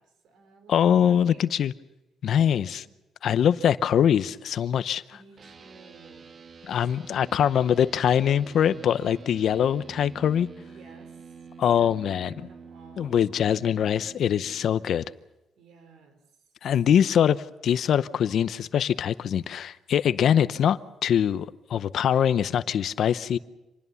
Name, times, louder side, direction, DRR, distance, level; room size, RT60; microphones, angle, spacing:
voice 1, 0.0-1.4 2.3-2.8 4.7-6.4 10.7-11.4 11.6-13.2 15.6-16.2, right 4 dB, 65° right, 4.1 m, -53 dB
voice 2, 0.7-1.7 2.2-2.8 3.2-5.0 6.6-10.5 11.6-12.3 13.0-15.0 16.6-23.4, left 9 dB, 55° left, 0.7 m, -23 dB
sound 1, 5.4-14.7, right 5 dB, 35° right, 1.3 m, -47 dB
26.5 x 20.5 x 7.1 m
cardioid pair, 145°, 0 cm